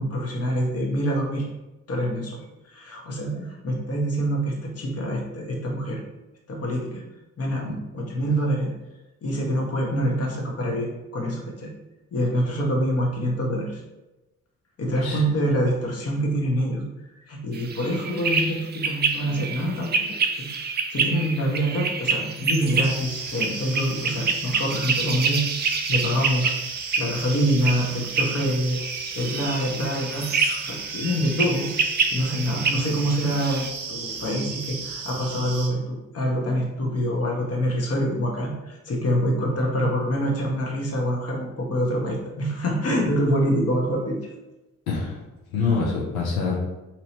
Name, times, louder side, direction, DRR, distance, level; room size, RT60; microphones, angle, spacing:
voice 1, 0.0-1.5 1.9-2.4 2.7-6.0 6.5-7.0 7.4-8.7 9.2-11.7 12.1-13.8 14.8-16.8 17.2-20.6 20.9-26.6 27.0-28.8 29.1-31.7 32.1-44.2, equal, 45° left, -1 dB, 1.0 m, -26 dB
sound 1, 17.5-33.7, right 4 dB, 30° right, 0.4 m, -28 dB
sound 2, 22.8-35.7, right 5 dB, 65° right, 0.8 m, -35 dB
voice 2, 44.9-46.6, left 4 dB, 85° left, -4 dB, 0.7 m, -26 dB
2.9 x 2.8 x 2.9 m, 1.0 s
hypercardioid pair, 45°, 35 cm